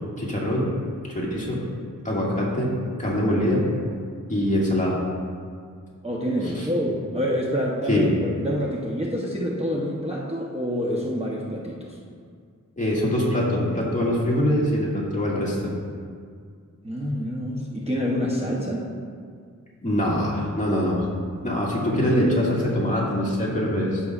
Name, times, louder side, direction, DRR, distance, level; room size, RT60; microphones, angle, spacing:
voice 1, 0.2-0.7 1.0-1.6 2.0-2.7 3.0-3.7 4.3-4.9 6.4-6.7 7.9-8.1 12.8-15.7 19.8-21.1 21.4-24.0, left 1 dB, 25° left, -5 dB, 1.9 m, -23 dB
voice 2, 6.0-12.0 16.8-18.9, equal, 20° right, -4 dB, 0.9 m, -27 dB
13.5 x 5.7 x 2.5 m, 2.1 s
wide cardioid pair, 75°, 33 cm